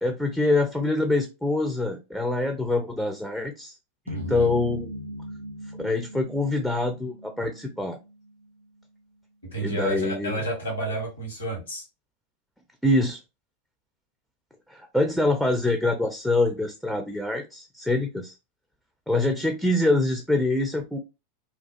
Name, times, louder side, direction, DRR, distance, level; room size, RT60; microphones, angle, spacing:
voice 1, 0.0-3.8 4.1-4.9 5.8-8.0 9.6-10.4 12.8-13.2 14.7-18.4 19.1-21.0, left 2 dB, ahead, 4 dB, 0.3 m, -25 dB
voice 2, 4.1-4.5 9.4-11.8, right 1 dB, 80° left, -1 dB, 1.2 m, -30 dB
sound 1, 4.1-8.5, equal, 85° right, 0.3 m, -39 dB
2.4 x 2.2 x 2.4 m, 0.27 s
figure-of-eight pair, 90°, 0 cm